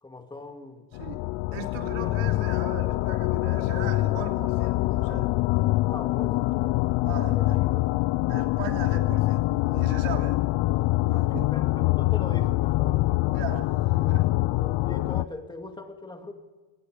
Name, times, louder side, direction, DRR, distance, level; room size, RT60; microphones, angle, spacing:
voice 1, 0.0-0.9 1.4-2.2 5.9-6.8 7.2-7.9 11.0-13.2 14.0-14.1 14.6-16.3, left 2 dB, 10° left, 4 dB, 2.5 m, -41 dB
sound 1, 0.9-15.2, left 19 dB, 90° left, 0.7 m, -25 dB
voice 2, 1.5-5.3 7.0-7.6 8.3-10.4 11.3-11.5 13.3-14.3, right 9 dB, 80° right, 3 dB, 3.1 m, -38 dB
27.0 x 21.0 x 5.1 m, 1.2 s
cardioid pair, 160°, 45 cm